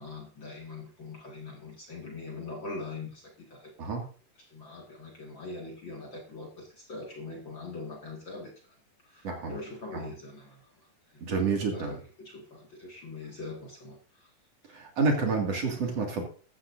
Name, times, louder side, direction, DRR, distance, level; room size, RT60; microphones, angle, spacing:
voice 1, 0.0-3.9 4.5-8.5 9.0-10.6 11.1-14.3, left 3 dB, 40° left, -1 dB, 2.5 m, -42 dB
voice 2, 9.2-9.6 9.9-10.1 11.2-12.0 14.7-16.2, right 4 dB, 50° right, 1 dB, 3.2 m, -29 dB
15.5 x 13.5 x 2.7 m, 0.39 s
omnidirectional pair, 3.9 m